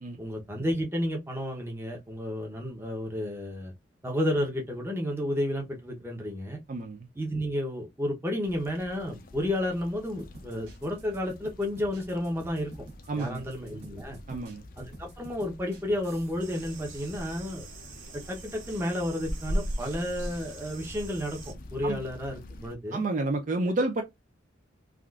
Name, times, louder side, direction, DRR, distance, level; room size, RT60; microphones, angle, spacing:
voice 1, 0.2-3.7 4.0-6.6 7.2-12.7 13.2-14.2 14.8-17.7 18.3-23.0, left 1 dB, 10° right, 0.7 m, -31 dB
voice 2, 6.7-7.0 13.1-13.4 14.3-14.6 21.8-22.0 22.9-24.0, right 2 dB, 40° right, 0.4 m, -29 dB
sound 1, 8.4-22.7, equal, 50° left, 0.4 m, -41 dB
Old Hip hop drum beat, 10.0-16.5, right 2 dB, 55° right, 0.9 m, -50 dB
sound 2, 16.4-21.5, right 5 dB, 80° right, 0.9 m, -47 dB
3.5 x 2.4 x 2.3 m
head